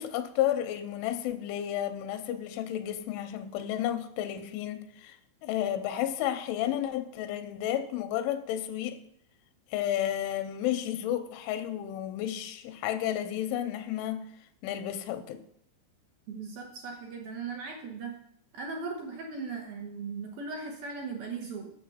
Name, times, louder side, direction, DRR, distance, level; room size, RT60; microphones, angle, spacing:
voice 1, 0.0-5.2 5.4-9.0 9.7-14.2 14.6-15.4, left 11 dB, 90° left, 3.1 m, -32 dB
voice 2, 16.3-18.2 18.5-21.7, right 4 dB, 65° right, 2.5 m, -38 dB
9.4 x 7.1 x 5.6 m
omnidirectional pair, 5.5 m